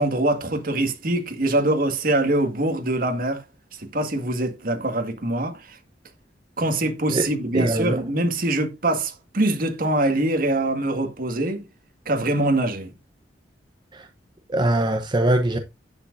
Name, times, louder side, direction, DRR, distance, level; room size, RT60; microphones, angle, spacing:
voice 1, 0.0-3.4 3.7-5.8 6.6-11.6 12.1-12.9, right 2 dB, 55° right, 1.9 m, -23 dB
voice 2, 7.5-8.0 13.9-14.1 14.5-15.6, right 1 dB, 25° right, 0.8 m, -22 dB
10.5 x 7.4 x 2.6 m
head